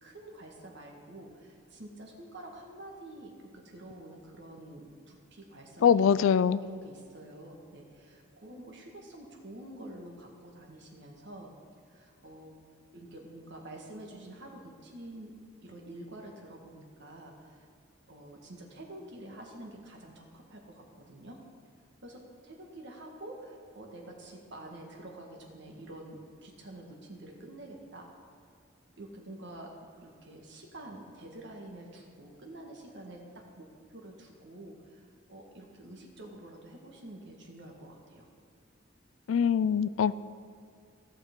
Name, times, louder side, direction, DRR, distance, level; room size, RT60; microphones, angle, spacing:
voice 1, 0.0-6.2 6.6-11.5 11.9-12.5 12.9-15.3 15.6-17.7 18.1-21.4 22.0-28.1 29.0-29.7 30.0-38.2, right 1 dB, 60° right, 1 dB, 1.6 m, -48 dB
voice 2, 5.8-6.6 39.3-40.2, left 7 dB, 85° left, 16 dB, 0.3 m, -23 dB
16.0 x 6.5 x 3.7 m, 2.3 s
head